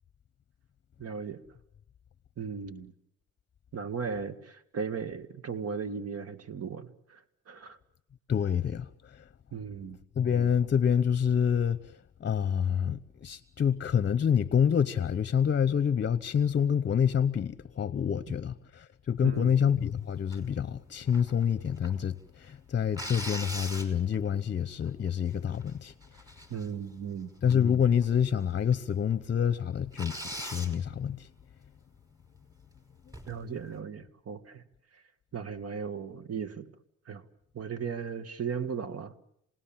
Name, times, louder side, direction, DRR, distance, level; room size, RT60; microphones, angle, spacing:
voice 1, 1.0-1.4 2.4-2.9 3.7-7.2 7.5-7.8 9.5-10.0 19.2-19.5 26.5-27.3 33.3-34.6 35.3-36.7 37.1-37.2 37.5-39.1, right 6 dB, 50° right, 2.0 m, -36 dB
voice 2, 8.3-9.2 10.2-11.8 12.2-25.9 27.4-31.3, left 8 dB, 35° left, 0.8 m, -27 dB
sound 1, 20.3-20.5 21.1-22.0 22.9-24.3 24.9-25.0 25.3-25.7 26.0-26.9 27.5-27.8 28.0-28.1 28.7-28.8 29.1-29.2 29.9-30.8 33.1-33.4, equal, 10° right, 5.4 m, -40 dB
28.0 x 19.0 x 7.4 m
cardioid pair, 90°, 30 cm